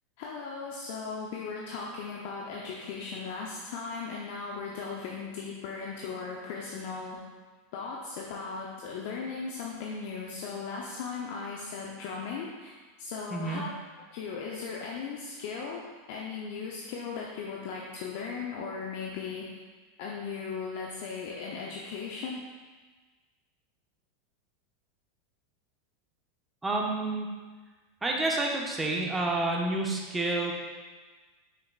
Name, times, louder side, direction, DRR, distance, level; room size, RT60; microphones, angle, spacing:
voice 1, 0.2-7.2 7.7-12.7 13.0-19.5 20.0-22.4, left 5 dB, 55° left, -2 dB, 0.8 m, -37 dB
voice 2, 13.3-13.6 26.6-27.3 28.0-30.5, right 2 dB, 10° right, -1 dB, 1.2 m, -29 dB
7.6 x 6.4 x 2.5 m, 1.3 s
figure-of-eight pair, 85°, 0 cm